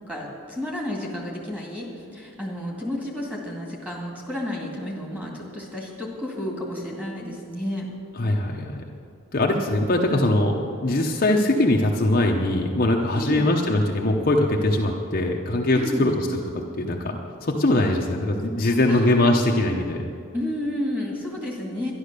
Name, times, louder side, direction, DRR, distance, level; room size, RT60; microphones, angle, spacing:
voice 1, 0.0-7.9 13.2-13.6 15.7-16.2 18.6-19.9 20.3-21.9, left 1 dB, 5° right, -2 dB, 2.1 m, -31 dB
voice 2, 8.2-8.8 9.3-16.1 16.8-20.0, left 1 dB, 40° left, 0 dB, 0.8 m, -22 dB
11.5 x 11.0 x 6.7 m, 2.4 s
head